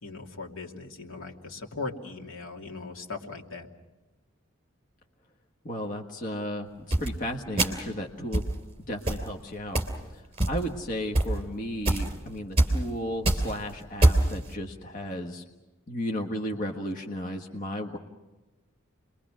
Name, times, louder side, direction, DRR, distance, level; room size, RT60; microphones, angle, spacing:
voice 1, 0.0-3.7, left 3 dB, 75° left, 1 dB, 2.7 m, -39 dB
voice 2, 5.6-6.7 7.0-8.5 8.9-9.8 10.1-15.4 15.9-18.0, equal, 40° left, 1 dB, 1.5 m, -34 dB
sound 1, 6.9-7.1 7.6-7.9 8.3-8.5 9.1-9.3 9.8-10.0 10.4-10.8 11.1-11.3 11.9-12.1 12.6-12.8 13.1-13.5 14.0-14.3, right 1 dB, 30° right, 3.0 m, -22 dB
29.5 x 22.5 x 6.2 m, 1.1 s
head